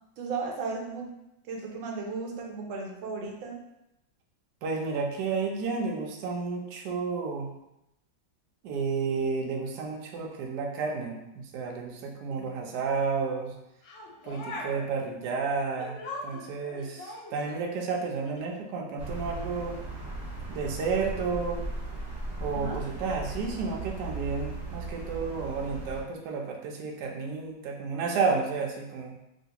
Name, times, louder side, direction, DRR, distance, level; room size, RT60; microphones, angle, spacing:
voice 1, 0.2-1.1 1.5-3.6 12.3-12.5 22.5-22.8, right 4 dB, 90° right, 0 dB, 1.4 m, -35 dB
voice 2, 4.6-7.5 8.6-13.5 14.2-16.0 16.2-19.7 20.5-21.6 22.4-29.1, right 4 dB, 70° right, 0 dB, 1.1 m, -31 dB
sound 1, 13.8-14.9 15.8-17.7 18.2-18.4, left 2 dB, 75° left, 1.3 m, -41 dB
sound 2, 19.0-26.0, right 2 dB, 45° right, 0.9 m, -37 dB
3.1 x 2.8 x 2.8 m, 0.88 s
omnidirectional pair, 2.0 m